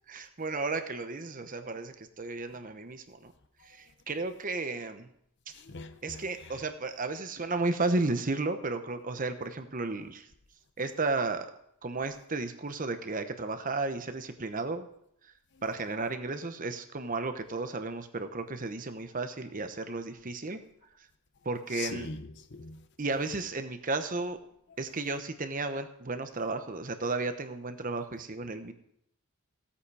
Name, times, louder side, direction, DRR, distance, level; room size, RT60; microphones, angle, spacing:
voice 1, 0.1-3.3 3.7-5.1 6.0-10.3 10.8-11.5 11.8-14.9 15.6-20.6 21.4-22.1 23.0-24.4 24.8-28.7, right 3 dB, 35° right, 0.9 m, -33 dB
voice 2, 5.5-6.5 21.7-22.8, left 4 dB, 50° left, 0.8 m, -42 dB
16.0 x 8.5 x 4.8 m
head